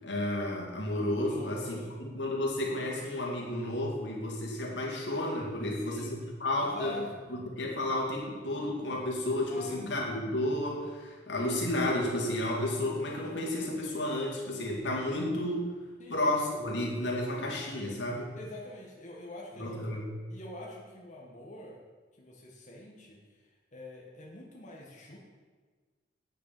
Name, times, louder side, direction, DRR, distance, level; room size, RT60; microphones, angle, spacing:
voice 1, 0.0-7.0 7.3-15.8 16.1-18.3 19.6-20.1, left 1 dB, 85° left, -2 dB, 2.4 m, -32 dB
voice 2, 1.2-2.1 5.6-6.2 6.5-7.1 9.5-9.8 16.0-16.2 18.4-19.8 20.3-21.8 22.2-23.2 23.7-25.2, left 1 dB, 45° left, -2 dB, 1.5 m, -45 dB
9.2 x 6.8 x 7.0 m, 1.4 s
head